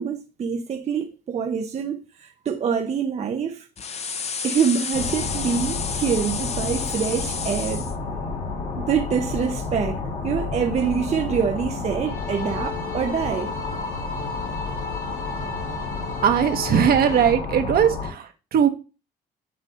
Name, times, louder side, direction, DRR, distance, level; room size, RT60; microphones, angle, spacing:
voice 1, 0.0-3.7 4.4-7.9 8.8-13.5, right 7 dB, 40° right, 0.6 m, -25 dB
sound 1, 3.8-8.0, left 6 dB, 40° left, 0.6 m, -31 dB
sound 2, 4.9-18.1, left 4 dB, 85° left, 4.0 m, -30 dB
sound 3, 12.0-17.3, left 3 dB, 65° left, 2.4 m, -36 dB
voice 2, 16.2-18.7, right 8 dB, 60° right, 1.0 m, -19 dB
7.6 x 2.7 x 5.1 m
supercardioid pair, 80°, 17 cm